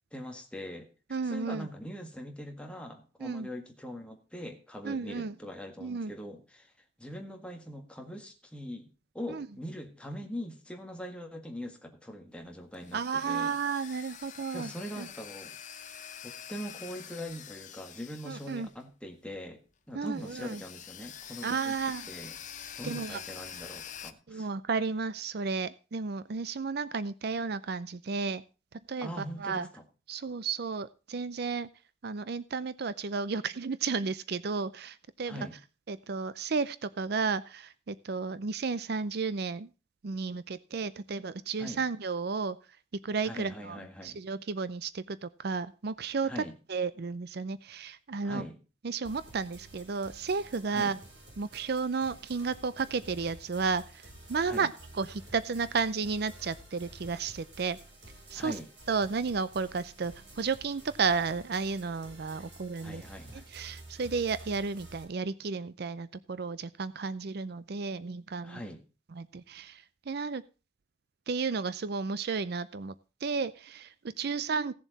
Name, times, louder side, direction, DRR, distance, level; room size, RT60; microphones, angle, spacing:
voice 1, 0.1-0.9 1.3-6.7 7.0-8.9 9.1-13.5 14.5-15.6 16.2-21.8 22.1-22.3 22.8-24.5 29.0-29.8 35.3-35.6 41.6-41.8 43.2-44.2 46.2-46.5 48.2-48.6 50.7-50.9 54.4-54.7 58.4-58.7 62.8-63.4 68.4-68.8, equal, 5° left, 3 dB, 1.8 m, -42 dB
voice 2, 1.1-1.7 3.2-3.5 4.8-5.3 5.8-6.1 9.3-9.5 12.9-14.7 15.0-15.1 18.3-18.7 19.9-20.6 21.4-22.1 22.8-23.2 24.3-28.4 28.9-29.7 30.1-31.7 32.0-35.4 35.9-39.7 40.0-42.6 43.0-46.4 46.7-48.5 48.8-51.0 51.4-54.0 54.3-57.8 58.3-58.5 58.9-63.0 63.3-68.6 69.1-70.4 71.3-72.9 73.2-74.7, right 4 dB, 60° right, 16 dB, 0.5 m, -33 dB
sound 1, 12.4-19.1 19.3-19.4 20.1-24.1, left 9 dB, 45° left, 0.9 m, -46 dB
sound 2, 49.0-65.0, right 1 dB, 80° right, 6.2 m, -51 dB
16.5 x 7.2 x 4.0 m, 0.33 s
head